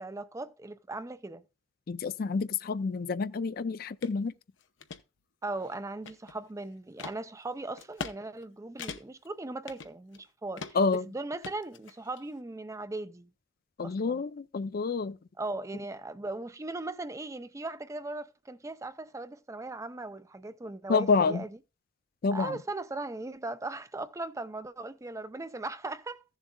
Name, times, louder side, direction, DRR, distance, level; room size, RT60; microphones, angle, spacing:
voice 1, 0.0-1.4 5.4-13.3 13.8-14.2 15.4-21.6 22.3-26.2, right 2 dB, 15° right, 0.4 m, -38 dB
voice 2, 1.9-4.3 10.8-11.0 13.8-15.2 20.9-21.4 22.2-22.5, left 4 dB, 50° left, 0.4 m, -28 dB
sound 1, 4.0-4.1 4.6-5.0 5.6-6.5 7.0-7.2 7.8-8.2 8.4-8.5 8.8-9.3 9.7-10.2 10.6-11.0 11.4-12.2, left 5 dB, 75° left, 0.8 m, -41 dB
15.5 x 7.2 x 2.3 m
head